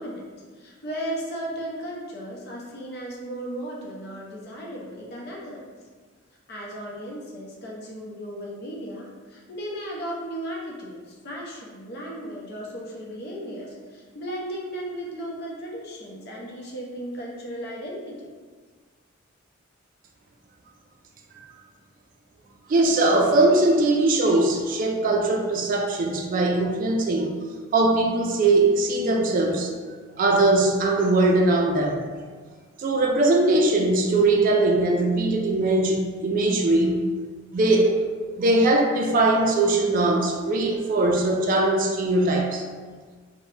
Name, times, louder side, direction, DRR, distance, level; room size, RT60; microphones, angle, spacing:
voice 1, 0.0-5.7 6.5-18.3, equal, 55° left, -3 dB, 0.6 m, -35 dB
voice 2, 22.7-27.3 27.7-29.7 30.2-32.0 32.8-37.0 37.5-38.1 38.4-42.6, right 2 dB, 45° right, 2 dB, 0.3 m, -21 dB
2.8 x 2.1 x 3.1 m, 1.5 s
head